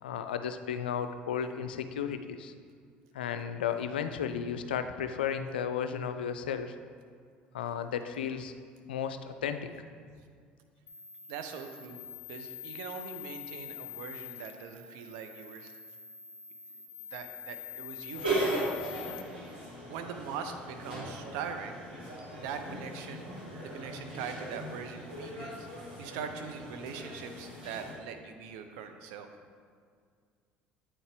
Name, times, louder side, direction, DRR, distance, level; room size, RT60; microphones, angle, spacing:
voice 1, 0.0-2.5 3.1-6.8 7.5-8.5 8.9-9.7, left 8 dB, 85° left, 9 dB, 0.3 m, -34 dB
sound 1, 10.9-19.2, left 9 dB, 50° left, 0.8 m, -45 dB
voice 2, 11.3-12.0 12.3-15.7 17.0-18.8 19.9-21.8 22.4-23.3 23.6-29.3, right 6 dB, 70° right, 6 dB, 0.6 m, -42 dB
sound 2, 18.1-27.9, right 1 dB, 90° right, 1.8 m, -38 dB
8.7 x 4.5 x 3.3 m, 2.1 s
hypercardioid pair, 65°, 5 cm